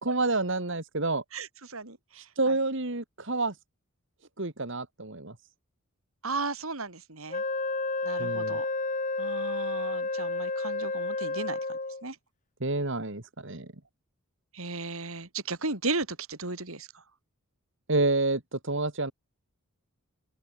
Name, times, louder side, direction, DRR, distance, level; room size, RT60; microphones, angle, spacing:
voice 1, 0.0-1.2 2.1-3.6 4.4-5.3 8.2-8.6 12.6-13.7 17.9-19.1, right 2 dB, 55° right, 2.2 m, -29 dB
voice 2, 1.3-2.6 6.2-7.4 8.0-8.7 9.2-11.6 12.0-12.2 14.5-17.0, right 3 dB, 70° right, 4.0 m, -35 dB
Wind instrument woodwind instrument, 7.3-12.0, left 3 dB, 35° left, 2.2 m, -31 dB
open air
head